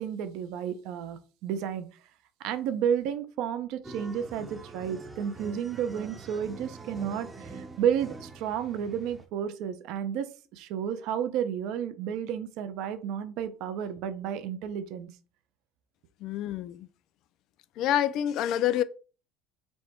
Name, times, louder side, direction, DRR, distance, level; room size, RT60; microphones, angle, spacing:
voice 1, 0.0-1.9 2.4-10.3 10.5-15.1, right 8 dB, 65° right, 0.5 m, -32 dB
sound 1, 3.8-9.3, right 4 dB, 15° right, 0.6 m, -44 dB
voice 2, 16.2-16.9 17.8-18.8, left 11 dB, 55° left, 0.3 m, -27 dB
4.2 x 2.2 x 4.3 m
cardioid pair, 135°, 0 cm